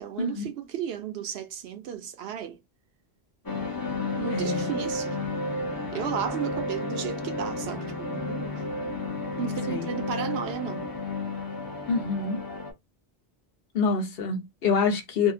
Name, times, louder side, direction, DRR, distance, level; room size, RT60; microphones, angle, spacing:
voice 1, 0.0-2.6 4.2-5.2 5.9-8.6 9.4-10.9, right 8 dB, 70° right, 0.8 m, -34 dB
sound 1, 3.5-12.7, left 2 dB, 25° left, 0.5 m, -32 dB
voice 2, 4.3-4.8 9.7-9.9 11.9-12.4 13.7-15.3, left 5 dB, 65° left, 0.9 m, -26 dB
2.6 x 2.0 x 2.5 m
omnidirectional pair, 1.1 m